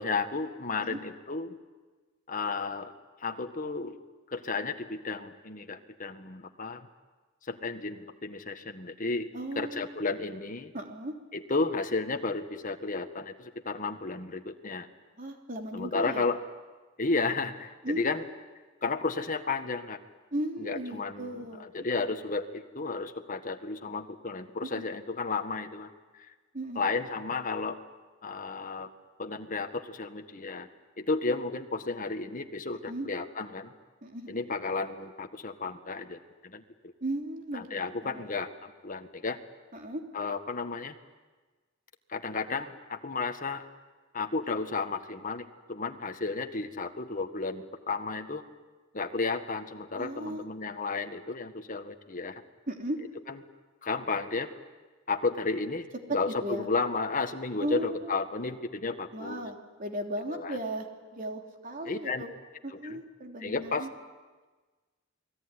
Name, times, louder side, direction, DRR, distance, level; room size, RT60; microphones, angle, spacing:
voice 1, 0.0-1.5 2.3-2.9 3.2-4.0 4.3-6.9 7.5-9.3 9.5-10.7 11.3-14.9 15.7-16.4 17.0-18.2 18.8-20.0 20.6-26.3 26.7-27.8 28.2-28.9 29.2-30.7 31.0-33.7 34.3-36.6 37.5-39.4 40.1-40.9 42.1-43.6 44.1-48.4 48.9-52.4 53.3-53.4 53.8-54.5 55.1-59.4 60.3-60.6 61.8-62.2 62.8-63.0 63.4-63.9, left 3 dB, 40° left, 7 dB, 1.7 m, -33 dB
voice 2, 9.3-9.9 10.7-11.1 15.2-16.3 17.8-18.2 20.3-21.6 24.7-24.9 26.5-26.8 32.9-33.1 34.0-34.3 37.0-38.3 39.7-40.0 49.9-50.4 52.7-53.0 56.1-56.7 57.6-58.1 59.1-62.3 62.6-63.9, right 1 dB, 45° right, 3 dB, 3.2 m, -36 dB
29.0 x 20.5 x 9.9 m, 1.3 s
head